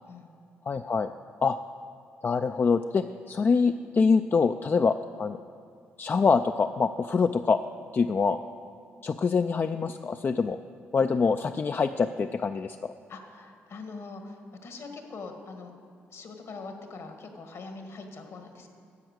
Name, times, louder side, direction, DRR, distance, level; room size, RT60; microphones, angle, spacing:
voice 1, 0.7-1.1 1.4-1.6 2.2-4.9 5.2-5.4 6.0-7.6 7.9-8.4 9.0-10.6 10.9-12.9, left 5 dB, 40° left, 8 dB, 0.4 m, -25 dB
voice 2, 13.1-15.7 16.1-18.7, left 3 dB, 65° left, 5 dB, 1.6 m, -42 dB
10.5 x 7.8 x 6.5 m, 2.4 s
supercardioid pair, 50°, 5 cm